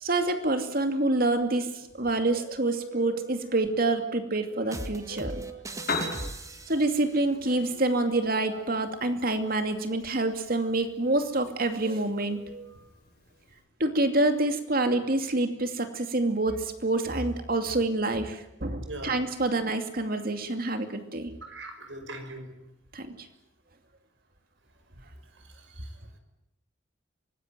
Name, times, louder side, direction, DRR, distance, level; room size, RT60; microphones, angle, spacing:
voice 1, 0.0-6.3 6.7-12.8 13.8-21.3 22.9-23.3, right 2 dB, 50° right, 7 dB, 2.5 m, -27 dB
sound 1, 4.7-7.0, right 1 dB, 15° right, 2.0 m, -38 dB
Piano, 5.6-13.6, left 3 dB, 50° left, 6.6 m, -41 dB
voice 2, 18.9-19.2 21.4-22.5 25.4-25.9, right 1 dB, 75° right, 7 dB, 5.7 m, -41 dB
25.0 x 20.0 x 9.4 m, 0.84 s
head